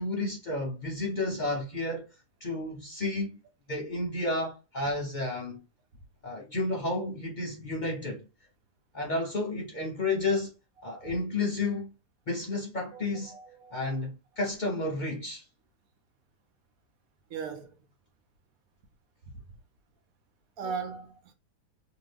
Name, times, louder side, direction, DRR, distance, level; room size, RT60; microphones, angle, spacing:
voice 1, 0.0-2.0 2.4-3.4 3.7-5.6 6.2-8.3 8.9-10.5 10.8-11.9 12.3-13.4 13.7-15.4, left 2 dB, 60° left, 0.5 m, -31 dB
voice 2, 12.9-14.0 17.3-17.8 19.3-19.4 20.6-21.3, right 5 dB, 70° right, 0.9 m, -39 dB
2.6 x 2.6 x 3.2 m
omnidirectional pair, 1.7 m